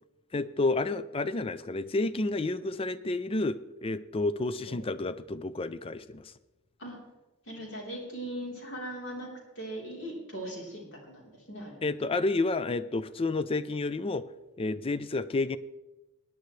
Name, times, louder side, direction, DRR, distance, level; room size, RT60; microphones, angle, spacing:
voice 1, 0.3-6.3 11.8-14.2 14.6-15.6, left 2 dB, 25° left, 14 dB, 0.4 m, -30 dB
voice 2, 7.5-11.9, right 1 dB, 55° left, -2 dB, 3.6 m, -40 dB
18.0 x 10.5 x 3.2 m, 1.1 s
head